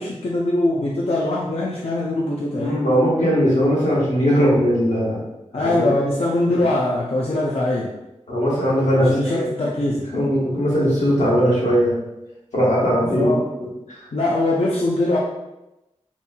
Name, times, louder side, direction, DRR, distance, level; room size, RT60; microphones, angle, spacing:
voice 1, 0.0-2.8 5.5-7.9 8.9-10.0 13.2-13.5 14.1-15.2, left 2 dB, 55° left, -4 dB, 0.4 m, -22 dB
voice 2, 2.5-5.2 5.5-5.9 6.4-6.5 8.3-9.4 10.1-12.0 12.5-13.3 13.6-14.1, equal, 80° left, -7 dB, 1.1 m, -19 dB
2.8 x 2.7 x 2.2 m, 0.95 s
cardioid pair, 45°, 12 cm